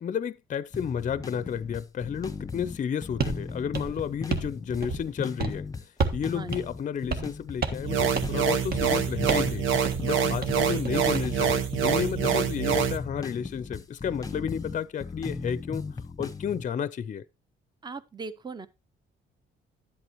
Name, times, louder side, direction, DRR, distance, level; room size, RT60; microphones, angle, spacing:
voice 1, 0.0-5.7 6.1-9.7 10.0-15.8 16.2-17.2, left 8 dB, 40° left, 0.5 m, -32 dB
sound 1, 0.7-16.7, left 4 dB, 15° left, 0.8 m, -38 dB
sound 2, 3.2-3.4 3.7-4.5 4.8-5.1 5.4-5.6 6.0-6.3 6.5-6.6 7.1-7.3 7.6-7.9 8.2-8.4 8.7-8.9 9.3-9.5 9.8-10.0 10.4-11.3, right 4 dB, 50° right, 1.5 m, -31 dB
sound 3, 7.8-13.0, right 8 dB, 85° right, 1.0 m, -26 dB
voice 2, 17.8-18.7, right 4 dB, 20° right, 0.7 m, -38 dB
11.5 x 8.0 x 2.9 m
cardioid pair, 90°, 20 cm